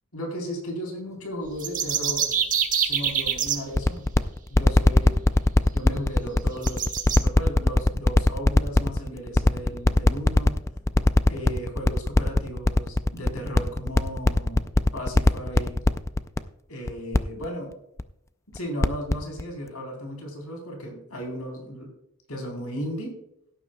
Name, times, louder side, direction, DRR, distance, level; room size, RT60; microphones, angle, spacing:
voice 1, 0.1-2.3 2.8-4.1 4.5-5.2 5.7-6.9 7.1-10.6 11.3-14.7 14.9-15.8 16.7-17.8 18.5-21.9 22.3-23.2, equal, 85° left, 1 dB, 3.8 m, -35 dB
sound 1, 1.5-3.6 5.3-5.4 5.8-5.9 6.6-7.2, right 8 dB, 40° right, 1.2 m, -25 dB
sound 2, 3.1-16.4 16.9-17.2 17.4-17.5 18.0-18.1 18.5-19.1 19.4-19.5, left 1 dB, 15° left, 0.3 m, -19 dB
17.0 x 9.8 x 2.3 m, 0.77 s
head